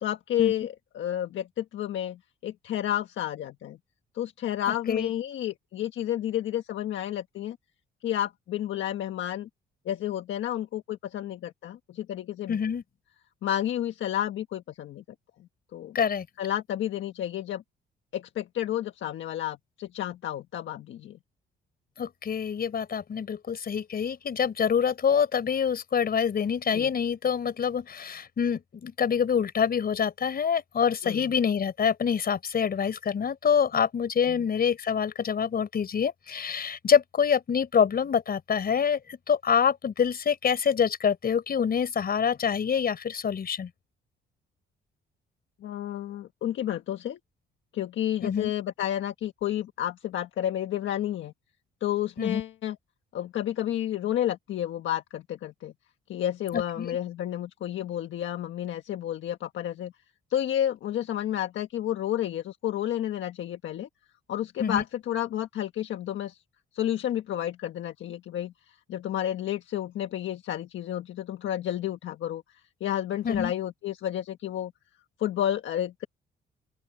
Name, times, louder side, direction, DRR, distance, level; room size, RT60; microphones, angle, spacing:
voice 1, 0.0-3.8 4.1-7.6 8.0-9.5 9.8-12.6 13.4-15.0 15.7-16.0 16.4-17.6 18.1-21.2 26.7-26.9 31.0-31.4 34.3-34.4 45.6-47.2 47.7-51.3 51.8-52.8 53.1-55.7 56.1-59.9 60.3-63.9 64.3-66.4 66.7-74.7 75.2-76.1, left 11 dB, 75° left, 1.5 m, -31 dB
voice 2, 12.5-12.8 15.9-16.3 22.0-43.7 48.2-48.5 52.2-52.4 56.5-57.0 64.6-64.8 73.2-73.5, left 7 dB, 50° left, 5.3 m, -26 dB
open air
cardioid pair, 90°, 20 cm